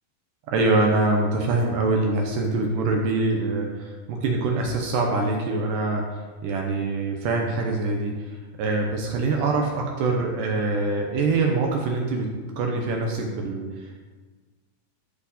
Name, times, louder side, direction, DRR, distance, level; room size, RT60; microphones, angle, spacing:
voice 1, 0.5-14.0, right 3 dB, 70° right, 1 dB, 2.1 m, -24 dB
12.5 x 5.5 x 4.1 m, 1.4 s
omnidirectional pair, 4.5 m